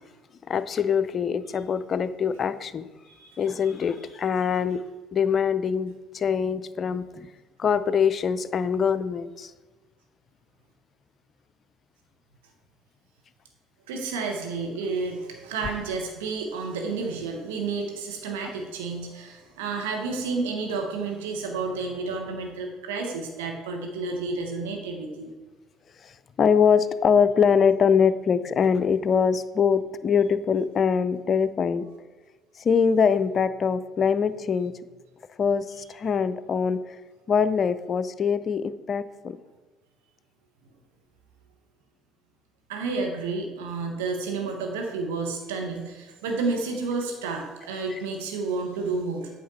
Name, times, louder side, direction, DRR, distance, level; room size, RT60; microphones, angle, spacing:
voice 1, 0.5-2.9 3.4-4.8 5.1-7.3 7.6-9.5 26.0-26.1 26.4-31.8 32.6-34.7 35.4-37.0 37.3-39.4 47.9-48.0, left 6 dB, 40° left, 13 dB, 0.4 m, -23 dB
voice 2, 3.1-3.4 13.9-25.3 42.7-49.3, right 4 dB, 75° right, 2 dB, 1.0 m, -31 dB
8.5 x 5.9 x 4.1 m, 1.3 s
figure-of-eight pair, 55°, 0 cm